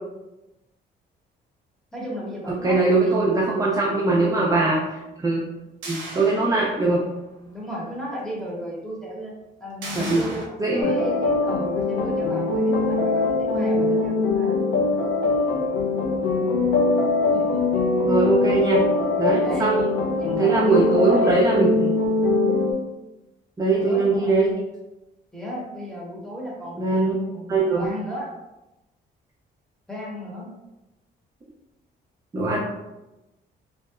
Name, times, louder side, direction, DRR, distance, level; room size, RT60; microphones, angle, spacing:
voice 1, 1.9-3.2 3.5-3.6 7.4-9.3 9.6-14.6 17.3-17.8 19.4-19.8 20.2-21.3 23.8-24.3 25.3-26.9 27.3-28.3 29.9-30.5, equal, 5° left, -5 dB, 0.9 m, -34 dB
voice 2, 2.5-5.4 5.9-7.0 9.9-10.3 10.6-10.9 18.0-18.8 19.2-19.9 20.4-21.7 23.6-24.5 26.8-27.2 27.5-27.9 32.3-32.6, right 3 dB, 15° right, -4 dB, 0.4 m, -21 dB
sound 1, 5.8-7.1 7.5-7.6 9.8-10.5, right 2 dB, 70° right, 0.5 m, -36 dB
sound 2, 10.8-22.7, left 3 dB, 85° left, 0.5 m, -22 dB
2.7 x 2.0 x 2.3 m, 0.99 s
cardioid pair, 90°, 20 cm